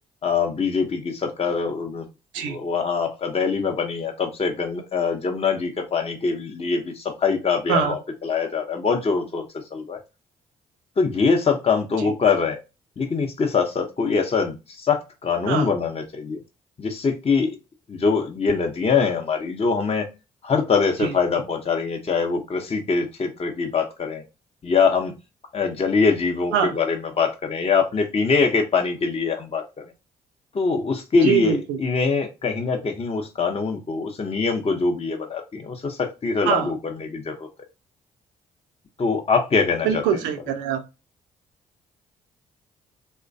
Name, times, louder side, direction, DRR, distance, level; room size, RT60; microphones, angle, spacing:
voice 1, 0.2-2.1 2.4-10.0 11.0-12.6 13.0-16.4 16.8-17.6 17.9-20.1 20.4-24.2 24.6-25.1 25.5-29.6 30.5-37.5 39.0-40.2, left 5 dB, 30° left, 4 dB, 0.7 m, -23 dB
voice 2, 31.2-31.8 36.5-36.7 39.8-40.8, right 8 dB, 75° right, 7 dB, 0.5 m, -23 dB
3.1 x 2.1 x 2.5 m, 0.27 s
hypercardioid pair, 45°, 19 cm